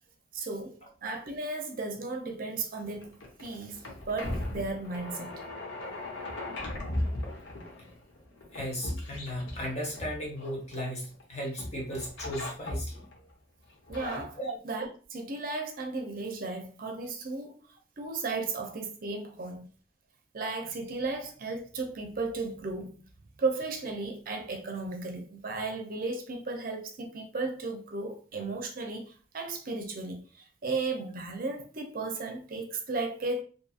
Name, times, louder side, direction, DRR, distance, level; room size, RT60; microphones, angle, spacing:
voice 1, 0.3-3.1 3.4-5.4 13.9-14.4 14.6-17.6 18.0-19.7 20.3-23.0 23.4-33.4, right 3 dB, 50° right, 0.5 m, -35 dB
sound 1, 2.8-11.2 11.6-13.2 13.7-14.2, left 1 dB, 85° left, 0.8 m, -37 dB
voice 2, 8.5-13.0 14.4-14.6, equal, 40° left, 1.0 m, -36 dB
2.6 x 2.6 x 2.4 m
head